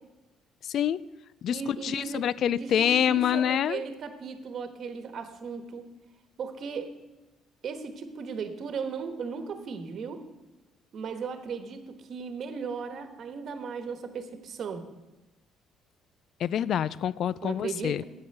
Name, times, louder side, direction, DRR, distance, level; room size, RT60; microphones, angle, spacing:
voice 1, 0.6-1.0 1.4-3.8 16.4-18.0, left 9 dB, 50° left, 19 dB, 0.4 m, -26 dB
voice 2, 1.5-5.8 6.4-6.9 7.6-10.2 10.9-14.8 17.4-18.0, right 5 dB, 45° right, 8 dB, 1.3 m, -36 dB
8.8 x 8.6 x 7.9 m, 1.0 s
cardioid pair, 145°, 0 cm